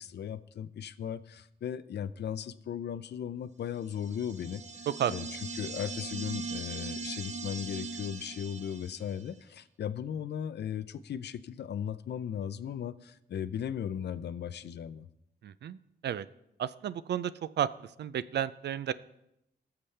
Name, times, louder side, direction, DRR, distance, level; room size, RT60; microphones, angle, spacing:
voice 1, 0.0-4.6 5.1-5.2 5.6-15.1, left 9 dB, 75° left, 13 dB, 0.5 m, -37 dB
sound 1, 3.9-9.3, right 4 dB, 40° right, 0.7 m, -40 dB
voice 2, 15.4-16.3 16.6-18.9, right 10 dB, 80° right, 17 dB, 0.5 m, -32 dB
19.5 x 6.9 x 3.3 m, 0.83 s
wide cardioid pair, 100°, 17 cm